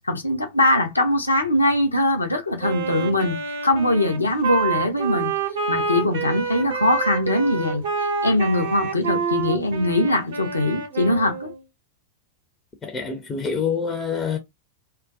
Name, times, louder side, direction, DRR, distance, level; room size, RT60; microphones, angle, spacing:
voice 1, 0.1-3.4 3.6-5.3 5.7-7.8 8.2-11.5, left 1 dB, 80° left, 0.6 m, -21 dB
Wind instrument woodwind instrument, 2.6-11.6, right 5 dB, 55° right, 0.7 m, -27 dB
voice 2, 12.8-14.4, left 6 dB, 20° left, 0.5 m, -26 dB
2.2 x 2.1 x 2.6 m
figure-of-eight pair, 90°, 0 cm